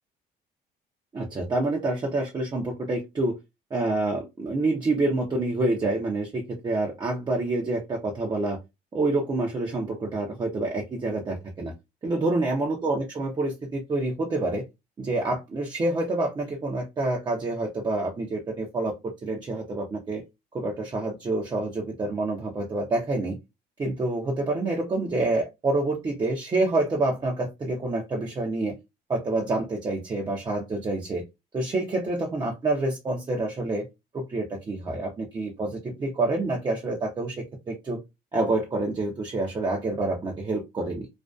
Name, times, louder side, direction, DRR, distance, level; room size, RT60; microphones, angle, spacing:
voice 1, 1.1-3.4 3.7-8.6 8.9-11.7 12.0-14.6 15.0-20.2 20.5-23.4 23.8-28.8 29.1-31.2 31.5-33.9 34.1-38.0 38.3-41.1, right 2 dB, 25° right, 0 dB, 0.5 m, -27 dB
2.5 x 2.2 x 2.3 m, 0.23 s
cardioid pair, 110°, 17 cm